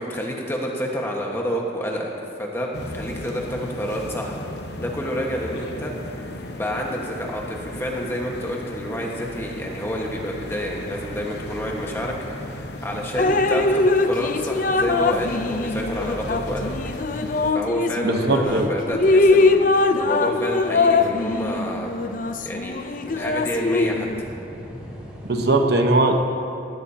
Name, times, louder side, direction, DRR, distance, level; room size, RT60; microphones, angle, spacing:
voice 1, 0.0-2.1 2.4-4.4 4.8-6.2 6.5-12.1 12.4-16.7 17.5-22.1 22.4-24.1, equal, 15° left, -1 dB, 1.4 m, -29 dB
sound 1, 2.7-17.5, left 1 dB, 65° left, 1.0 m, -35 dB
Drip, 13.2-18.4 18.9-24.2, left 3 dB, 45° left, 0.5 m, -21 dB
voice 2, 18.0-18.7 25.3-26.2, right 2 dB, 60° right, 4 dB, 1.0 m, -19 dB
sound 2, 18.2-25.5, equal, 5° right, 3.1 m, -41 dB
18.0 x 16.0 x 2.8 m, 2.6 s
head